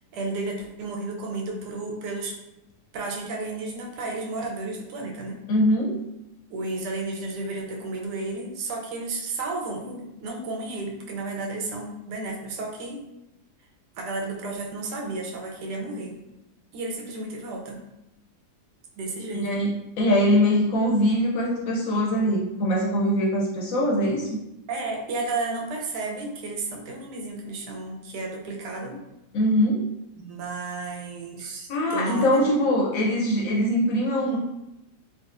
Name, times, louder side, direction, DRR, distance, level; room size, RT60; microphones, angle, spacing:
voice 1, 0.1-2.4 2.9-5.4 6.5-13.0 14.0-16.2 16.7-17.8 19.0-19.6 24.7-29.0 30.2-32.4, right 2 dB, 85° right, 1 dB, 1.2 m, -32 dB
voice 2, 5.5-6.0 19.3-24.3 29.3-29.8 31.7-34.4, equal, 70° left, -3 dB, 0.9 m, -22 dB
3.6 x 2.3 x 2.4 m, 0.92 s
omnidirectional pair, 1.7 m